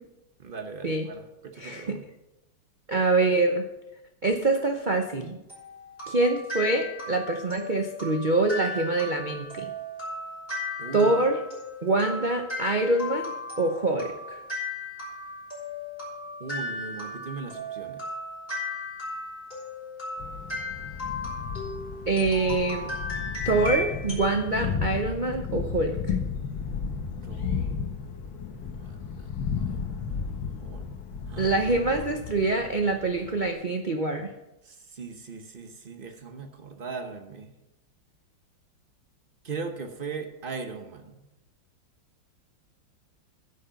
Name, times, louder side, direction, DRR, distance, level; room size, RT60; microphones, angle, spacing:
voice 1, 0.4-2.1 10.8-11.1 16.4-18.0 27.2-27.9 28.8-29.3 29.6-30.3 30.6-31.0 31.3-31.8 34.6-37.5 39.4-41.2, right 4 dB, 40° right, 6 dB, 0.8 m, -39 dB
voice 2, 1.6-2.0 2.9-3.7 4.2-5.4 6.1-9.7 10.9-11.4 11.8-13.2 13.6-14.4 22.1-22.9 23.4-26.2 31.4-34.3, right 2 dB, 75° right, 4 dB, 0.4 m, -25 dB
sound 1, 5.5-24.4, left 2 dB, 25° left, 5.1 m, -36 dB
Thunder, 20.2-33.5, left 6 dB, 75° left, 2.0 m, -34 dB
10.0 x 6.5 x 6.9 m, 0.93 s
omnidirectional pair, 2.2 m